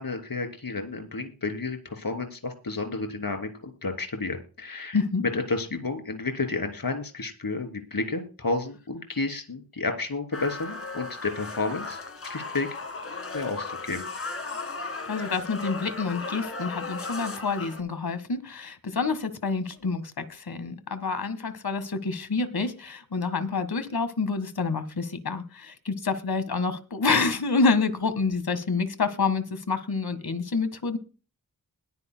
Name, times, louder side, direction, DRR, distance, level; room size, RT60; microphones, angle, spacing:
voice 1, 0.0-12.7 13.3-14.0, left 3 dB, 70° left, 6 dB, 3.3 m, -31 dB
voice 2, 4.9-5.2 15.1-31.0, left 4 dB, 85° left, 12 dB, 1.7 m, -28 dB
sound 1, 10.3-17.8, left 3 dB, 40° left, 2.0 m, -36 dB
21.0 x 9.7 x 2.2 m, 0.33 s
wide cardioid pair, 65°, 36 cm